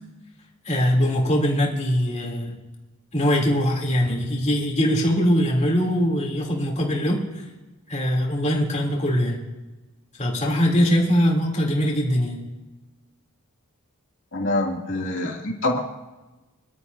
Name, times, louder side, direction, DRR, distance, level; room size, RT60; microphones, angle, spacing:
voice 1, 0.7-2.5 3.1-7.5 7.9-9.4 10.2-12.4, equal, 30° left, -2 dB, 3.4 m, -22 dB
voice 2, 14.3-15.8, left 2 dB, 55° left, -1 dB, 2.9 m, -25 dB
24.5 x 12.5 x 2.8 m, 1.1 s
head